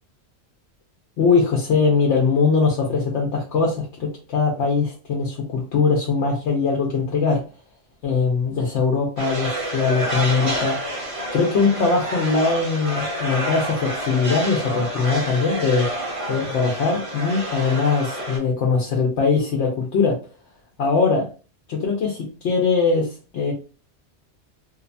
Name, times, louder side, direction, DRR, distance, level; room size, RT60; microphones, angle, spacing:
voice 1, 1.2-7.4 8.0-10.8 11.3-15.9 16.3-20.2 20.8-21.3 21.7-23.5, left 4 dB, 80° left, 0 dB, 0.9 m, -21 dB
sound 1, 9.2-18.4, equal, 30° right, 0.9 m, -28 dB
2.7 x 2.1 x 2.5 m, 0.34 s
omnidirectional pair, 1.2 m